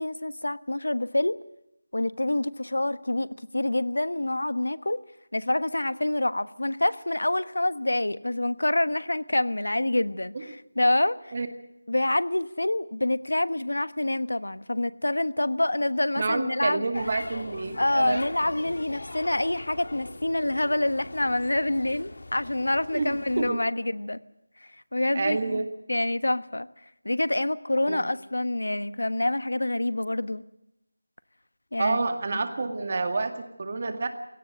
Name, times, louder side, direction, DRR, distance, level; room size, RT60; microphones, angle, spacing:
voice 1, 0.0-1.4 1.9-3.3 3.5-5.0 5.3-11.1 11.9-16.9 17.8-24.2 24.9-25.6 25.9-26.7 27.0-30.4 31.7-32.0 32.3-32.4, left 1 dB, 90° left, 14 dB, 1.2 m, -26 dB
voice 2, 16.2-18.2 22.9-23.6 25.1-25.7 27.9-28.0 31.8-34.1, right 3 dB, 30° right, 7 dB, 2.1 m, -28 dB
sound 1, 16.9-23.5, left 2 dB, 60° left, 1.9 m, -41 dB
26.5 x 18.0 x 6.6 m, 0.86 s
figure-of-eight pair, 175°, 0 cm